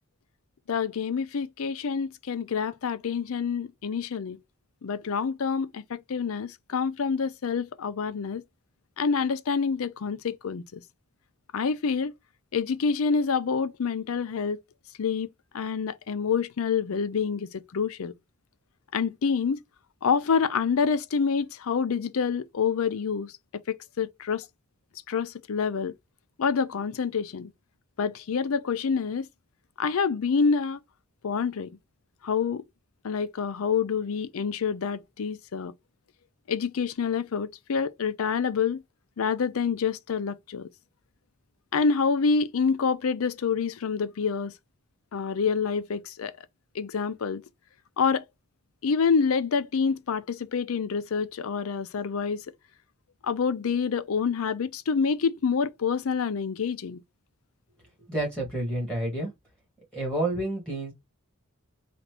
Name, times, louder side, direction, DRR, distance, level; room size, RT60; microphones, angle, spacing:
voice 1, 0.7-4.4 4.8-8.4 9.0-10.8 11.5-12.1 12.5-14.6 15.0-15.3 15.5-18.1 18.9-19.6 20.0-23.3 23.7-24.5 25.1-25.9 26.4-27.5 28.0-29.3 29.8-30.8 31.2-31.7 32.2-32.6 33.0-35.7 36.5-38.8 39.2-40.7 41.7-44.5 45.1-46.4 46.7-47.4 48.0-48.2 48.8-52.4 53.2-57.0, left 5 dB, 75° left, 0.5 m, -27 dB
voice 2, 58.1-59.3 59.9-60.9, right 1 dB, 5° left, 1.7 m, -29 dB
4.1 x 2.5 x 3.3 m
head